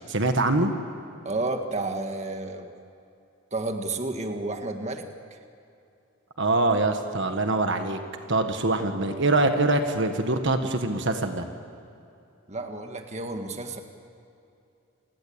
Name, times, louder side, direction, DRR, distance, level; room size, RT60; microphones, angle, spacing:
voice 1, 0.1-0.7 6.4-8.0 8.3-11.4, right 2 dB, 55° right, 6 dB, 1.6 m, -24 dB
voice 2, 1.2-2.7 3.5-5.4 12.5-13.8, right 2 dB, 30° right, 5 dB, 1.7 m, -31 dB
29.5 x 20.0 x 8.8 m, 2.6 s
head